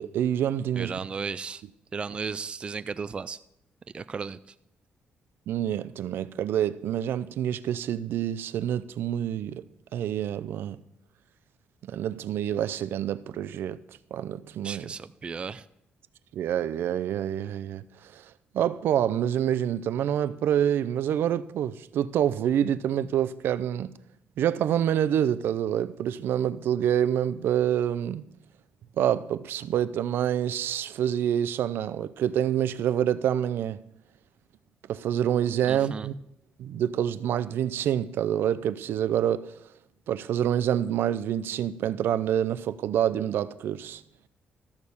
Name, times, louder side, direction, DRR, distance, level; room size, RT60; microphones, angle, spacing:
voice 1, 0.0-0.9 5.5-9.6 9.9-10.8 11.9-13.8 14.1-14.9 16.3-18.2 18.5-23.9 24.4-28.2 29.0-33.8 34.9-36.1 36.6-39.5 40.1-44.0, right 10 dB, 80° right, 0.5 m, -27 dB
voice 2, 0.8-1.6 1.9-3.4 3.9-4.5 14.6-15.6 35.7-36.1, right 5 dB, 30° right, 0.4 m, -35 dB
13.5 x 6.5 x 7.0 m
cardioid pair, 140°, 4 cm